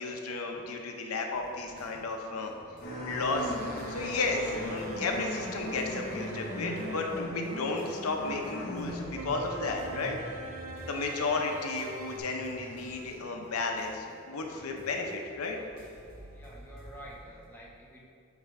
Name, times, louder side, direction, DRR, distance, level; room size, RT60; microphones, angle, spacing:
voice 1, 0.0-2.5 3.0-3.5 3.9-10.2 10.9-15.6, left 3 dB, 90° left, 2 dB, 0.7 m, -33 dB
sound 1, 1.3-17.5, right 1 dB, 90° right, 1.3 m, -51 dB
sound 2, 2.8-11.2 11.5-11.6 12.7-12.8, left 1 dB, 50° left, 1.0 m, -39 dB
sound 3, 3.4-7.2 9.1-12.2, right 2 dB, 70° right, 0.5 m, -45 dB
voice 2, 16.3-18.0, right 1 dB, 10° left, -5 dB, 0.9 m, -49 dB
7.3 x 3.4 x 4.6 m, 2.4 s
head